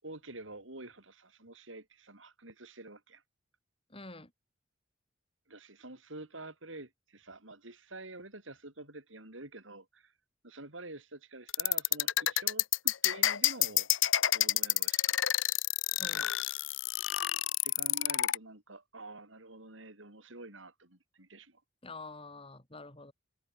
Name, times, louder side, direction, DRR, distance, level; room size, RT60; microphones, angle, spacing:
voice 1, 0.0-3.2 5.5-10.1 10.4-13.9 14.3-15.2 17.6-21.6, right 2 dB, 85° right, 6.5 m, -48 dB
voice 2, 3.9-4.3 16.0-16.3 21.8-23.1, left 3 dB, 30° left, 6.5 m, -47 dB
sound 1, 11.5-18.4, left 14 dB, 85° left, 0.9 m, -28 dB
head